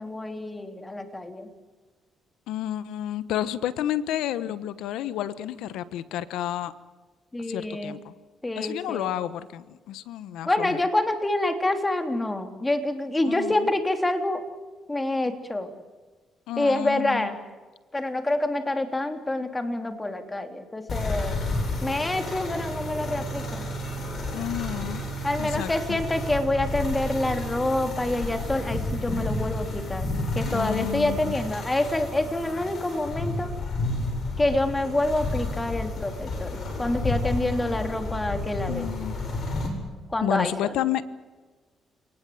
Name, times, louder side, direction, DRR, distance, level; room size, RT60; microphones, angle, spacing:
voice 1, 0.0-1.5 7.3-8.0 8.4-9.1 10.4-14.4 14.9-15.7 16.6-17.4 17.9-21.4 21.8-23.6 25.2-30.1 30.3-33.5 34.4-38.9 40.1-40.7, left 1 dB, 15° left, 7 dB, 3.3 m, -27 dB
voice 2, 2.5-6.7 7.5-8.1 8.6-10.8 13.2-13.7 16.5-17.3 24.3-25.0 25.4-26.0 30.5-31.4 38.7-39.2 40.2-41.0, left 12 dB, 90° left, 15 dB, 1.1 m, -31 dB
sound 1, 20.9-39.7, left 2 dB, 50° left, 8.0 m, -31 dB
29.0 x 19.0 x 7.8 m, 1.3 s
cardioid pair, 90°, 0 cm